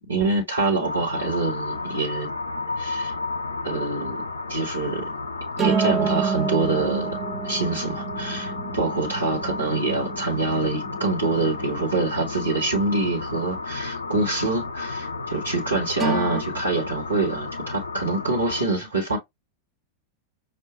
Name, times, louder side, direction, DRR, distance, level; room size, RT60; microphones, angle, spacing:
voice 1, 0.1-2.3 2.8-3.1 3.6-5.1 5.6-7.2 7.4-19.2, right 3 dB, 75° right, 1.2 m, -25 dB
sound 1, 0.8-18.7, left 3 dB, 75° left, 0.5 m, -32 dB
sound 2, 5.6-12.5 16.0-16.4, right 6 dB, 15° right, 0.7 m, -29 dB
6.1 x 2.2 x 2.4 m
figure-of-eight pair, 90°, 0 cm